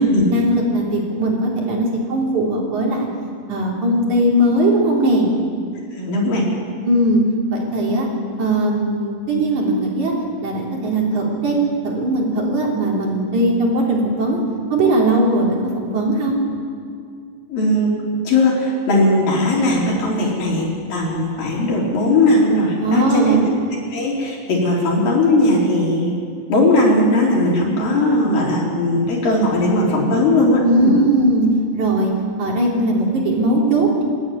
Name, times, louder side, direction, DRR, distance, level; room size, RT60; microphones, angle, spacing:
voice 1, 0.0-3.1 3.5-5.3 6.9-7.2 7.5-8.1 8.4-10.1 10.4-11.6 11.8-14.4 14.7-16.4 22.8-23.4 30.6-31.5 31.7-32.1 32.4-34.0, right 1 dB, 55° right, -2 dB, 4.4 m, -19 dB
voice 2, 5.9-6.5 17.5-17.9 18.2-23.5 23.9-26.1 26.5-30.9, left 1 dB, 70° left, -3 dB, 5.8 m, -18 dB
29.5 x 10.5 x 9.6 m, 2.3 s
omnidirectional pair, 4.1 m